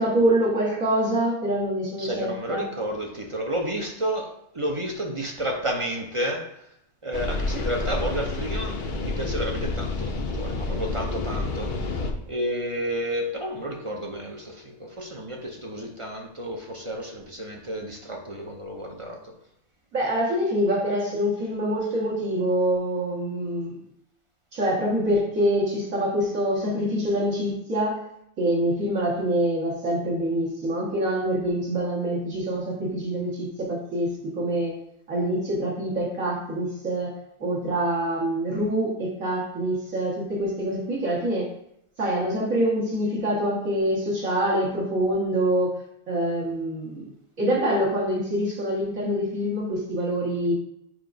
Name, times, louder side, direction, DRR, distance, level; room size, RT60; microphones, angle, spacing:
voice 1, 0.0-2.7 19.9-23.8 24.5-28.1 28.4-34.8 35.1-41.5 42.0-47.0 47.4-50.5, right 1 dB, 75° right, -6 dB, 1.9 m, -25 dB
voice 2, 2.0-6.5 7.0-12.0 12.3-19.2, equal, 35° right, 1 dB, 0.5 m, -31 dB
sound 1, 7.1-12.1, left 3 dB, 50° left, 0.7 m, -29 dB
7.4 x 2.5 x 5.1 m, 0.77 s
omnidirectional pair, 1.4 m